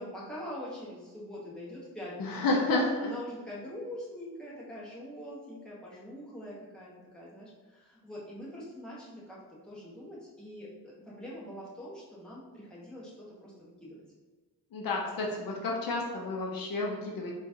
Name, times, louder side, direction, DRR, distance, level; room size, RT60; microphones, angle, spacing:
voice 1, 0.0-2.6 3.0-14.0, left 1 dB, ahead, -7 dB, 0.9 m, -44 dB
voice 2, 2.2-3.1 14.7-17.3, left 2 dB, 65° left, -1 dB, 0.6 m, -30 dB
3.8 x 2.4 x 2.6 m, 1.3 s
wide cardioid pair, 135°, 38 cm